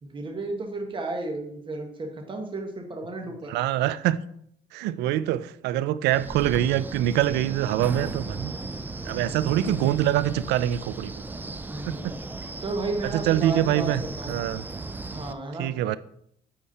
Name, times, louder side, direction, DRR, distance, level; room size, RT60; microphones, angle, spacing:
voice 1, 0.0-3.5 9.4-10.0 11.7-12.2 12.6-14.4 15.1-15.7, right 2 dB, 30° right, 1.6 m, -33 dB
voice 2, 3.5-4.2 4.7-8.5 9.0-11.1 11.9-12.1 13.1-14.0 14.3-14.6 15.6-16.0, right 12 dB, 80° right, 0.4 m, -24 dB
Wind, 6.1-15.3, right 3 dB, 10° right, 0.4 m, -36 dB
8.7 x 4.8 x 4.2 m
cardioid pair, 110°, 17 cm